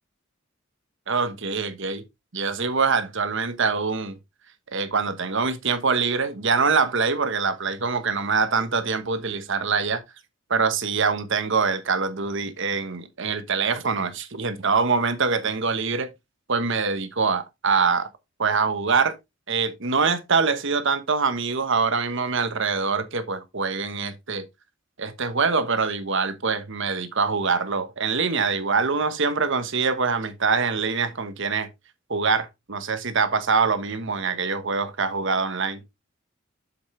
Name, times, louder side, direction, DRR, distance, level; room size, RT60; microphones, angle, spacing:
voice 1, 1.1-2.0 2.3-4.2 4.7-10.0 10.5-16.1 16.5-18.1 18.4-19.1 19.5-24.5 25.0-31.7 32.1-35.8, right 5 dB, 60° right, 1.2 m, -24 dB
7.2 x 7.0 x 3.2 m
head